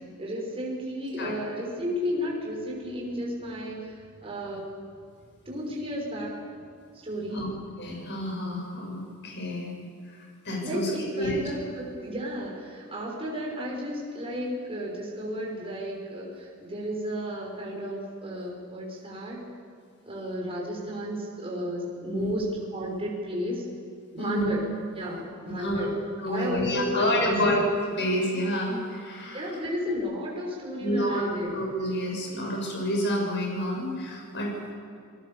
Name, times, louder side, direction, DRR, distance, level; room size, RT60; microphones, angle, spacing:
voice 1, 0.2-4.7 5.4-6.4 7.0-7.4 10.6-19.4 20.1-22.5 22.7-23.6 24.1-24.6 24.9-25.9 26.3-27.5 29.3-31.5, equal, 25° right, -2 dB, 5.8 m, -33 dB
voice 2, 7.8-9.7 10.2-10.9 11.2-11.4 22.1-22.3 24.2-24.5 25.6-25.9 26.2-27.6 28.0-29.5 30.8-31.2 31.5-34.7, left 1 dB, 55° left, 0 dB, 7.4 m, -29 dB
28.0 x 20.0 x 7.1 m, 2.3 s
head